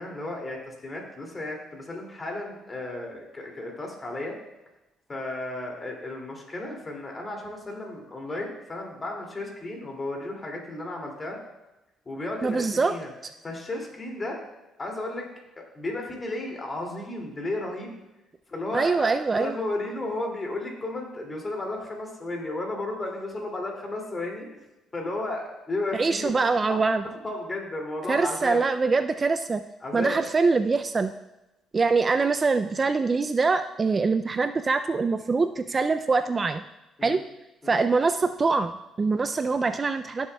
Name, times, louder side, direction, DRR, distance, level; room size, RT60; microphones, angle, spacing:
voice 1, 0.0-4.3 5.1-11.4 12.1-13.1 13.4-14.4 14.8-15.3 15.6-18.0 18.5-24.6 24.9-26.8 27.2-28.6 29.8-30.2 37.0-37.2 37.6-37.8, left 2 dB, 25° left, 0 dB, 2.4 m, -33 dB
voice 2, 12.4-12.9 18.7-19.6 25.9-27.0 28.1-29.6 29.9-31.1 31.7-36.6 37.0-37.2 37.7-40.3, right 4 dB, 30° right, 10 dB, 0.3 m, -24 dB
15.0 x 7.2 x 2.2 m, 0.98 s
cardioid pair, 100°, 0 cm